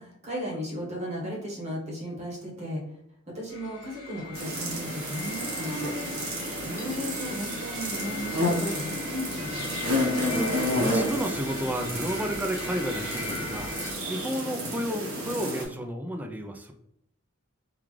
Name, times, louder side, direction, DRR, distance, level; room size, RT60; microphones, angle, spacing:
voice 1, 0.0-2.8 3.3-5.9 6.6-9.7, equal, 35° right, -2 dB, 0.9 m, -35 dB
sound 1, 3.5-13.9, left 3 dB, 15° left, 1.1 m, -40 dB
sound 2, 4.3-15.6, equal, 85° right, 1.1 m, -30 dB
voice 2, 10.4-16.7, equal, 10° right, 4 dB, 0.3 m, -32 dB
3.7 x 2.3 x 3.1 m, 0.78 s
head